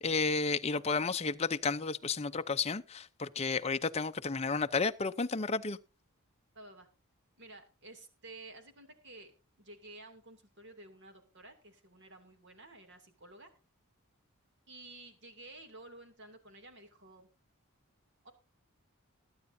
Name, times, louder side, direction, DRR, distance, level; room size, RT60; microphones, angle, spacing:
voice 1, 0.0-5.8, left 4 dB, 30° left, 0.6 m, -32 dB
voice 2, 6.5-6.9 7.4-9.3 9.6-13.5 14.7-17.3 18.2-18.3, right 2 dB, 50° right, 2.6 m, -52 dB
20.5 x 9.6 x 2.7 m
head